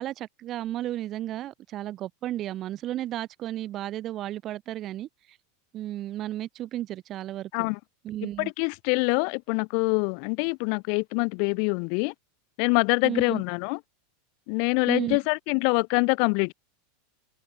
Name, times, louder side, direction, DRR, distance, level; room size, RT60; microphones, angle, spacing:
voice 1, 0.0-5.4 5.7-7.5 8.0-8.5 13.0-13.4 14.9-15.2, right 13 dB, 30° right, 6.1 m, -33 dB
voice 2, 8.2-12.1 12.6-13.8 14.5-16.5, left 40 dB or more, 50° left, 3.7 m, -25 dB
open air
supercardioid pair, 150°, 0 cm